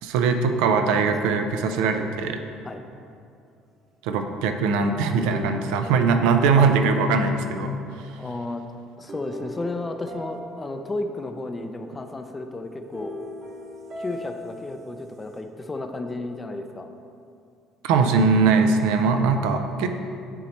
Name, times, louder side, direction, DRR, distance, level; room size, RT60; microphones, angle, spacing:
voice 1, 0.0-2.4 4.0-7.8 17.8-19.9, right 4 dB, 90° right, 7 dB, 0.4 m, -21 dB
sound 1, 5.2-7.7 9.1-11.5 12.9-15.4, left 1 dB, 40° right, 1.0 m, -40 dB
voice 2, 8.1-8.6 9.0-13.2 14.0-16.9, left 2 dB, 20° left, 6 dB, 0.4 m, -33 dB
8.8 x 3.0 x 4.2 m, 2.5 s
cardioid pair, 125°, 0 cm